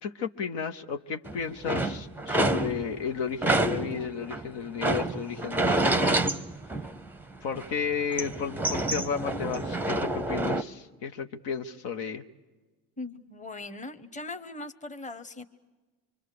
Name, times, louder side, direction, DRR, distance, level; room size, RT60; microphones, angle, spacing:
voice 1, 0.0-6.2 7.4-12.2, left 6 dB, 65° left, 6 dB, 1.1 m, -33 dB
sound 1, 1.3-3.0 3.4-7.2 7.5-10.6, right 2 dB, 5° right, 0.7 m, -28 dB
voice 2, 13.0-15.4, left 2 dB, 15° left, 8 dB, 1.2 m, -40 dB
25.0 x 24.0 x 6.8 m, 1.3 s
hypercardioid pair, 70°, 45 cm